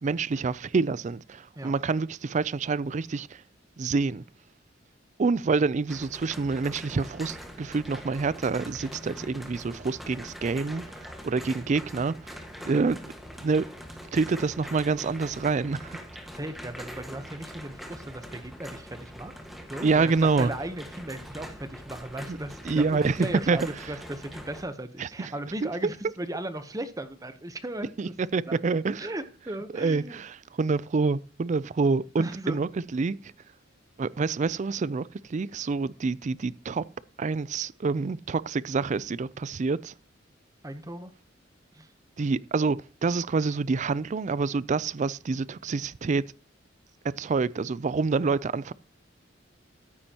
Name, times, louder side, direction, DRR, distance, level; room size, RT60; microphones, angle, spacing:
voice 1, 0.0-3.4 3.8-4.2 5.2-10.8 11.2-12.3 12.7-13.1 13.4-13.7 14.1-16.0 19.8-20.5 22.3-22.4 22.6-23.6 25.0-25.3 25.6-25.7 28.0-29.0 29.7-33.2 34.0-36.8 37.2-39.9 42.2-46.2 47.0-48.7, right 4 dB, 40° right, 0.4 m, -27 dB
sound 1, 5.9-24.6, equal, ahead, 1.5 m, -43 dB
voice 2, 16.3-19.3 19.7-28.1 28.5-28.6 29.0-30.2 32.2-32.6 40.6-41.1 41.7-41.9 48.2-48.4, right 1 dB, 20° right, 0.9 m, -37 dB
14.5 x 9.6 x 2.9 m
head